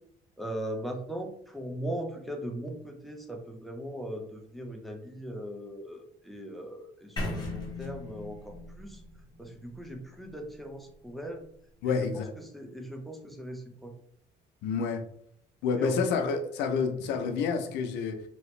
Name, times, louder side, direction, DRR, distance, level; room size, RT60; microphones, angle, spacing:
voice 1, 0.4-9.0 9.4-11.4 11.8-13.9 15.8-16.0, right 1 dB, ahead, 2 dB, 0.6 m, -39 dB
sound 1, 7.2-11.1, left 2 dB, 25° left, 1.0 m, -39 dB
voice 2, 11.8-12.3 14.6-15.0 15.6-18.2, left 5 dB, 90° left, 6 dB, 0.6 m, -28 dB
3.0 x 2.7 x 3.1 m, 0.67 s
cardioid pair, 110°, 17 cm